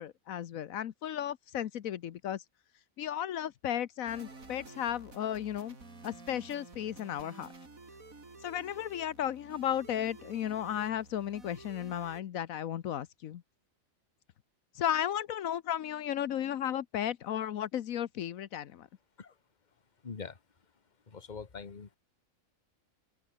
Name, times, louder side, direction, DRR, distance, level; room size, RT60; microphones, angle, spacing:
voice 1, 0.0-2.4 3.0-5.8 6.0-7.5 8.4-13.4 14.8-18.9, left 10 dB, 85° left, 1.3 m, -34 dB
sound 1, 4.0-12.2, right 3 dB, 85° right, 4.2 m, -52 dB
voice 2, 20.0-20.4 21.1-21.9, left 5 dB, 35° left, 1.5 m, -43 dB
open air
omnidirectional pair, 1.4 m